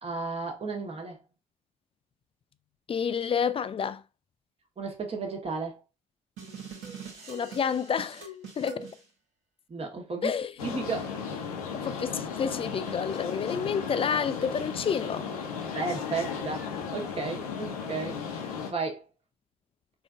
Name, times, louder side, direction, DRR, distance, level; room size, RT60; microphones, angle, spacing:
voice 1, 0.0-1.2 4.8-5.8 9.7-10.3 10.6-11.1 15.7-18.4 18.7-19.0, right 4 dB, 35° right, 1.3 m, -34 dB
voice 2, 2.9-4.0 7.3-8.3 8.6-8.9 10.2-10.5 11.7-15.3, left 7 dB, 30° left, 0.4 m, -29 dB
sound 1, 6.4-9.0, right 4 dB, 75° right, 1.3 m, -43 dB
sound 2, 10.6-18.7, left 6 dB, 90° left, 0.7 m, -35 dB
3.7 x 2.6 x 2.5 m
hypercardioid pair, 55°, 18 cm